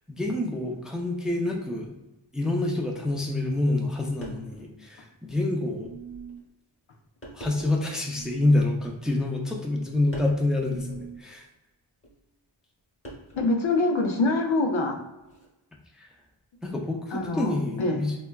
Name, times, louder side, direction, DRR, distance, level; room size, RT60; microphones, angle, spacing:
voice 1, 0.1-1.9 2.3-5.9 7.3-11.5 15.9-16.1 16.6-18.2, left 2 dB, ahead, 0 dB, 0.4 m, -27 dB
sound 1, 2.5-2.7 3.8-3.9 4.2-4.7 5.3-5.4 6.3-6.5 7.2-7.9 8.8-9.4 10.1-10.5 12.0-12.2 13.0-13.6 15.2-15.5, right 1 dB, 30° left, 1.1 m, -44 dB
sound 2, 5.8-6.5 8.1-8.7 10.6-11.3, right 8 dB, 55° right, 0.5 m, -42 dB
voice 2, 13.3-15.0 17.1-18.0, left 2 dB, 80° left, 3 dB, 0.6 m, -25 dB
4.3 x 2.2 x 2.2 m, 1.0 s
wide cardioid pair, 75°, 47 cm